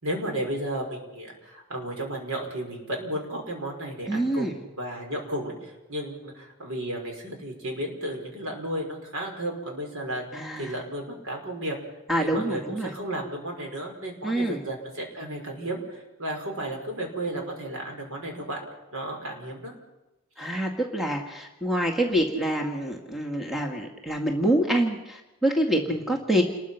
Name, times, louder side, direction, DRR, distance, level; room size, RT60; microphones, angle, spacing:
voice 1, 0.0-11.8 12.2-18.6 18.9-19.7 20.4-20.5, right 1 dB, 70° right, 2 dB, 5.7 m, -33 dB
voice 2, 4.1-4.5 10.3-10.7 12.1-12.9 14.2-14.6 20.4-26.4, right 1 dB, ahead, 1 dB, 2.0 m, -26 dB
29.0 x 21.0 x 5.8 m, 1.0 s
head